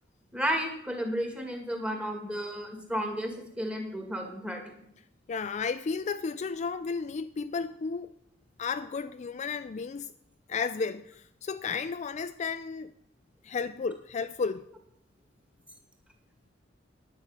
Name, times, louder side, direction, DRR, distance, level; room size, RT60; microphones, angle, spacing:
voice 1, 0.3-4.6, equal, 5° right, 2.1 m, -32 dB
voice 2, 5.3-8.1 8.6-10.1 10.5-12.9 13.4-14.7, left 5 dB, 40° left, 0.4 m, -33 dB
10.5 x 9.3 x 6.5 m
head